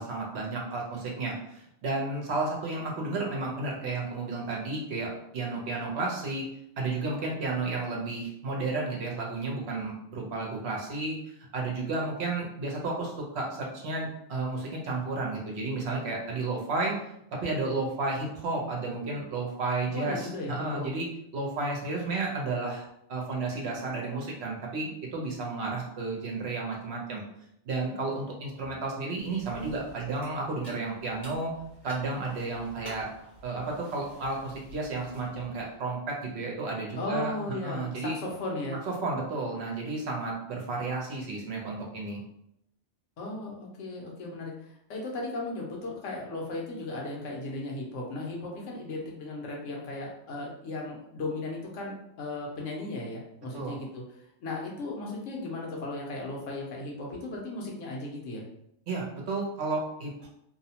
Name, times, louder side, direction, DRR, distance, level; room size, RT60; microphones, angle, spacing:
voice 1, 0.0-6.5 6.8-11.2 11.5-17.0 17.3-21.1 21.3-27.2 27.6-31.6 31.8-33.1 33.4-37.3 37.6-38.1 38.9-42.2 53.5-53.8 58.9-60.3, right 3 dB, 65° right, -1 dB, 0.9 m, -32 dB
voice 2, 19.9-20.9 37.0-38.8 43.2-54.0 54.4-58.4, left 2 dB, 85° left, -2 dB, 1.1 m, -36 dB
sound 1, 29.2-35.7, equal, 40° left, 1.4 m, -51 dB
2.7 x 2.0 x 2.8 m, 0.76 s
omnidirectional pair, 1.2 m